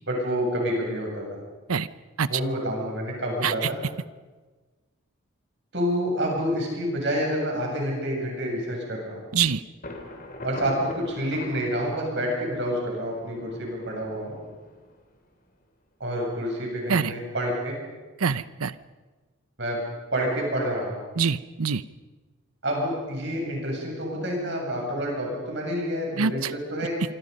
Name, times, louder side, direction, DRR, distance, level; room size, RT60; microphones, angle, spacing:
voice 1, 0.1-1.4 2.3-3.8 5.7-9.3 10.4-14.4 16.0-17.8 19.6-19.8 20.1-21.0 22.6-27.0, equal, 55° right, 0 dB, 7.8 m, -28 dB
Thunder, 9.8-15.5, left 1 dB, 40° left, 3.1 m, -42 dB
voice 2, 18.2-18.7 21.2-21.8 26.2-26.5, right 6 dB, 90° right, 16 dB, 0.8 m, -24 dB
25.5 x 25.5 x 5.5 m, 1.3 s
head